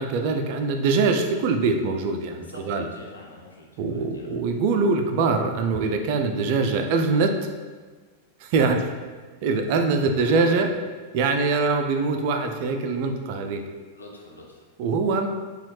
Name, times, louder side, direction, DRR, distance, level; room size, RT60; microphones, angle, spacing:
voice 1, 0.0-2.9 3.8-7.5 8.4-8.8 9.4-10.7 11.1-13.6 14.8-15.3, right 4 dB, 45° right, 5 dB, 0.3 m, -23 dB
voice 2, 2.4-4.3 8.6-8.7 10.2-10.6 11.2-11.4 13.9-14.6, left 2 dB, 75° left, -1 dB, 0.6 m, -45 dB
4.0 x 2.3 x 3.0 m, 1.4 s
figure-of-eight pair, 90°, 0 cm